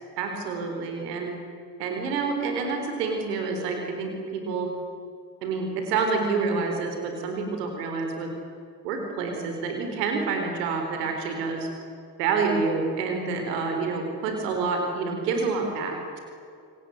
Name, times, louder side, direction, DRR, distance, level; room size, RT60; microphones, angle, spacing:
voice 1, 0.2-1.3 1.8-4.7 5.4-8.3 8.8-11.7 12.2-16.2, right 4 dB, 75° right, 4 dB, 4.4 m, -28 dB
27.5 x 24.0 x 8.2 m, 2.4 s
figure-of-eight pair, 55°, 49 cm